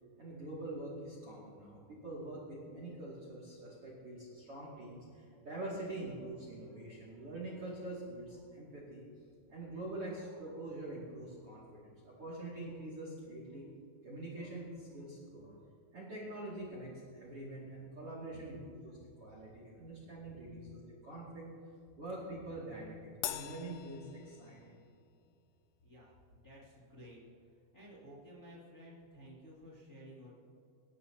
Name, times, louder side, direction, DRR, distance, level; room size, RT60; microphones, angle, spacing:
voice 1, 0.2-9.1 9.5-13.6 14.0-15.5 15.9-21.5 22.0-24.8, right 1 dB, 40° right, -5 dB, 2.4 m, -45 dB
Crash cymbal, 23.2-24.9, left 12 dB, 85° left, 3.0 m, -43 dB
voice 2, 25.8-27.2 27.5-30.3, equal, 25° left, -6 dB, 2.2 m, -54 dB
25.5 x 13.5 x 2.9 m, 2.4 s
omnidirectional pair, 5.6 m